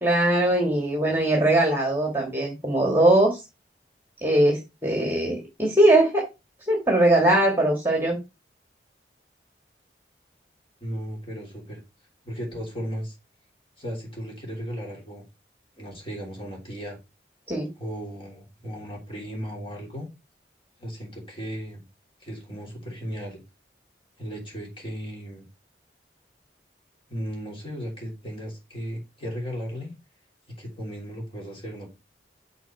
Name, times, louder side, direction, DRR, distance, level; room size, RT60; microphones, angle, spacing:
voice 1, 0.0-3.4 4.2-6.2 6.7-8.2 17.5-17.7, right 1 dB, 10° right, 1 dB, 1.7 m, -21 dB
voice 2, 10.8-11.8 12.2-13.1 13.8-15.2 15.8-17.0 17.8-20.1 20.8-21.8 22.2-23.4 24.2-25.4 27.1-29.9 30.6-31.9, equal, 30° left, 0 dB, 3.2 m, -35 dB
6.2 x 4.0 x 5.8 m, 0.25 s
head